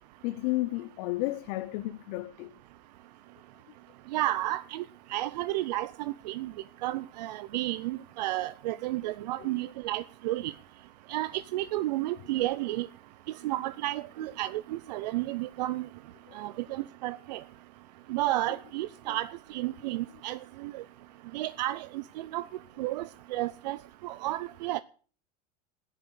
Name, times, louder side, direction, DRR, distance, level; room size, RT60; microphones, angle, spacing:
voice 1, 0.2-2.5 9.4-9.5 16.3-16.5 19.1-19.2, left 19 dB, 65° left, 0.8 m, -33 dB
voice 2, 4.1-4.8 5.1-6.5 6.8-10.5 11.1-12.9 13.4-15.9 16.3-17.4 18.1-20.8 21.3-22.5 22.8-23.8 24.0-24.8, right 16 dB, 85° right, 0.6 m, -32 dB
13.0 x 10.0 x 6.4 m
supercardioid pair, 120°, 21 cm